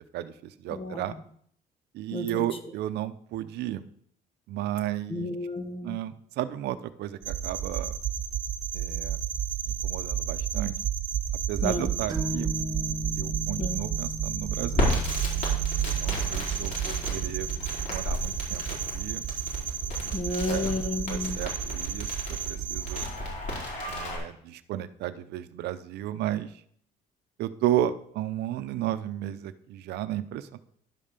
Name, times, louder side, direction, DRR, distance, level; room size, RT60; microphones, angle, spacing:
voice 1, 0.1-1.1 1.9-3.8 4.5-5.3 5.8-8.0 8.7-9.2 9.8-10.8 11.5-12.5 13.2-14.9 15.8-17.5 17.9-19.2 20.0-20.2 20.5-20.7 21.1-23.1 23.9-26.6 27.4-30.6, right 12 dB, 75° right, 13 dB, 0.7 m, -33 dB
voice 2, 0.7-1.2 2.1-2.5 5.1-6.0 11.6-11.9 13.6-13.8 20.1-21.5, left 2 dB, 30° left, 8 dB, 1.5 m, -32 dB
sound 1, 7.2-23.1, right 9 dB, 50° right, 1.0 m, -31 dB
sound 2, 12.1-19.6, left 1 dB, 25° right, 2.1 m, -39 dB
Crackle, 14.7-24.2, left 1 dB, 50° left, 4.7 m, -34 dB
11.0 x 5.5 x 6.6 m, 0.65 s
cardioid pair, 110°, 17 cm